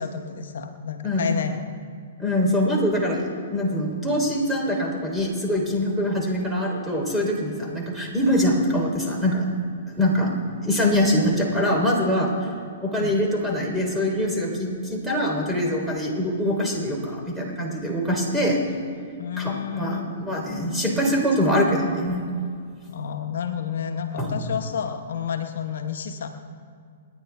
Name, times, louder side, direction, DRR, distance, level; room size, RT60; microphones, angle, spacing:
voice 1, 0.0-1.8 12.9-13.2 19.2-20.1 22.9-26.3, left 7 dB, 65° left, 6 dB, 1.0 m, -30 dB
voice 2, 2.2-9.4 9.9-10.3 10.6-12.3 12.8-18.6 19.4-22.2 24.1-24.3, equal, 5° right, -2 dB, 3.4 m, -23 dB
28.0 x 10.0 x 3.5 m, 2.2 s
hypercardioid pair, 120°, 0 cm